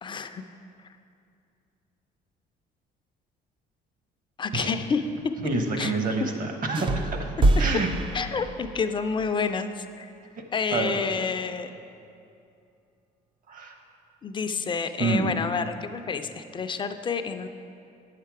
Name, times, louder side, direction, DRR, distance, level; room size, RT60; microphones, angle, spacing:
voice 1, 0.0-0.4 4.4-5.1 5.8-5.9 8.1-10.1 10.5-11.7 14.2-17.5, left 5 dB, 30° left, 8 dB, 0.4 m, -29 dB
voice 2, 5.4-7.1 7.6-7.9 10.7-10.9 13.5-13.7 15.0-15.3, right 3 dB, 55° right, 4 dB, 1.1 m, -27 dB
sound 1, 6.7-8.9, right 2 dB, 30° right, 0.4 m, -25 dB
8.6 x 6.6 x 4.7 m, 2.5 s
cardioid pair, 110°, 17 cm